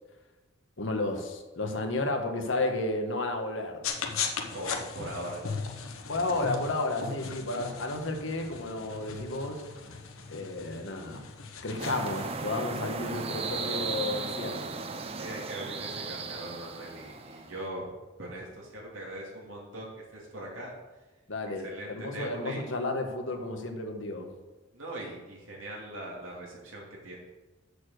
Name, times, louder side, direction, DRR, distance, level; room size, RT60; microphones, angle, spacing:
voice 1, 0.8-3.8 6.1-9.6 10.3-11.3 11.6-14.7 21.3-24.3, left 2 dB, 65° left, 4 dB, 1.2 m, -32 dB
sound 1, 3.8-12.4, left 5 dB, 90° left, 1.0 m, -38 dB
voice 2, 4.5-5.4 15.1-17.8 18.2-20.7 21.6-22.7 24.7-27.2, right 1 dB, 75° right, -2 dB, 2.7 m, -40 dB
sound 2, 11.8-17.6, right 4 dB, 30° right, 0.5 m, -36 dB
6.8 x 6.6 x 6.5 m, 1.2 s
head